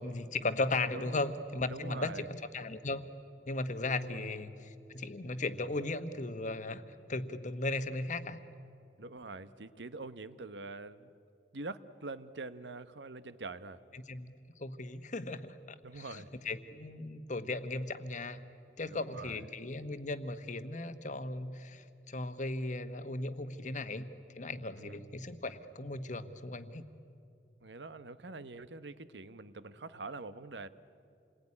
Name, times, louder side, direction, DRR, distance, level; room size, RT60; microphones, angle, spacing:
voice 1, 0.0-3.1 3.5-6.8 7.1-8.4 13.9-14.3 14.6-15.5 15.9-18.4 18.8-24.1 24.3-26.8, left 2 dB, 45° left, 10 dB, 1.2 m, -37 dB
voice 2, 1.7-2.2 4.0-4.2 9.0-11.1 11.5-13.8 15.8-16.3 18.9-19.4 24.8-25.0 27.6-30.7, right 3 dB, 80° right, 13 dB, 1.0 m, -45 dB
28.0 x 21.0 x 9.9 m, 2.5 s
head